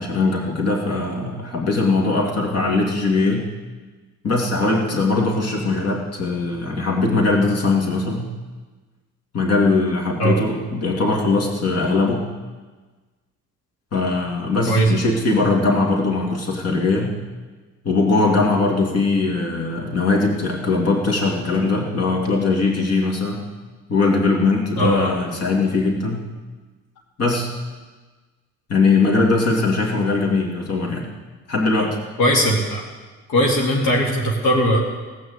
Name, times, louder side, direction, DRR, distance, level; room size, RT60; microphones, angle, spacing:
voice 1, 0.0-3.5 4.2-8.3 9.3-12.3 13.9-17.2 17.8-23.4 23.9-26.2 27.2-27.5 28.7-31.0 31.5-32.0, left 3 dB, 55° left, 0 dB, 2.7 m, -20 dB
voice 2, 24.8-25.1 32.2-32.8 33.3-34.8, equal, 85° left, -2 dB, 2.5 m, -18 dB
17.5 x 6.4 x 8.0 m, 1.3 s
cardioid pair, 90°, 30 cm